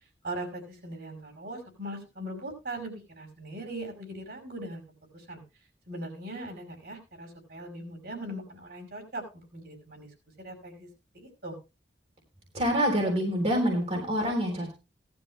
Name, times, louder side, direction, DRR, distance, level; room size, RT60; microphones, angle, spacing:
voice 1, 0.2-4.8 5.1-5.4 5.9-10.1 10.4-10.9 11.1-11.6, right 1 dB, 65° right, 3 dB, 5.4 m, -40 dB
voice 2, 12.5-14.7, equal, 40° right, 0 dB, 3.6 m, -26 dB
18.5 x 12.5 x 2.2 m, 0.29 s
head